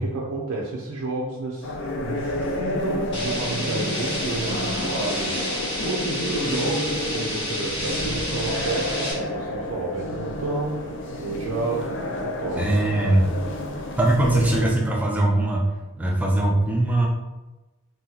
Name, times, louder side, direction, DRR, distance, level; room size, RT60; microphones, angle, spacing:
voice 1, 0.0-1.7 2.0-12.8, right 3 dB, 90° right, -4 dB, 0.5 m, -31 dB
sound 1, 1.6-14.7, left 1 dB, 55° left, 0.4 m, -30 dB
sound 2, 3.1-9.1, equal, 25° left, 0.8 m, -30 dB
voice 2, 12.6-13.2 14.0-15.7 16.0-17.1, right 1 dB, 5° right, -2 dB, 0.4 m, -21 dB
2.8 x 2.2 x 3.9 m, 1.1 s
head